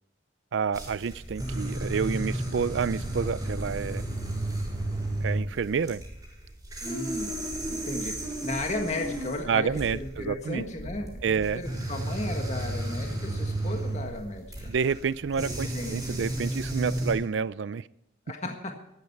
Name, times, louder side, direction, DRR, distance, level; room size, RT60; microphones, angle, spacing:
voice 1, 0.5-4.0 5.2-6.0 9.5-10.6 11.2-11.6 14.7-17.9, right 6 dB, 70° right, 0.4 m, -29 dB
sound 1, 0.7-17.1, right 1 dB, 20° right, 6.0 m, -33 dB
voice 2, 6.8-14.7 15.3-16.3 18.3-18.8, left 2 dB, 35° left, 1.7 m, -35 dB
14.0 x 13.5 x 4.7 m
head